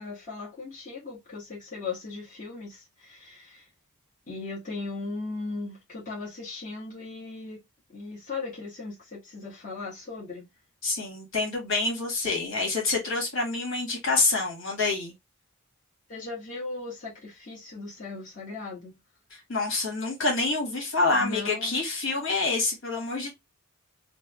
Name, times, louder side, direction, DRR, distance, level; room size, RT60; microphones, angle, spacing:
voice 1, 0.0-3.7 4.3-7.6 7.9-10.5 16.1-19.0 21.1-21.8, left 3 dB, 35° left, 1.2 m, -38 dB
voice 2, 10.8-15.1 19.5-23.3, left 3 dB, 65° left, 1.5 m, -27 dB
3.4 x 2.1 x 3.4 m
head